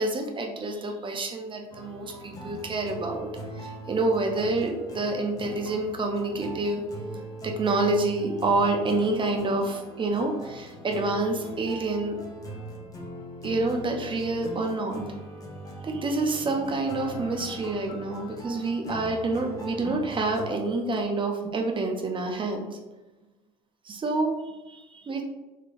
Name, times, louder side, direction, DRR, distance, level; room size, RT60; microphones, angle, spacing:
voice 1, 0.0-3.3 3.5-6.8 7.1-12.2 13.4-15.1 15.8-22.8 23.8-25.2, right 2 dB, 25° right, 3 dB, 0.7 m, -28 dB
sound 1, 1.7-20.5, equal, 15° left, 0.9 m, -41 dB
3.8 x 3.1 x 2.5 m, 1.1 s
hypercardioid pair, 85°, 20 cm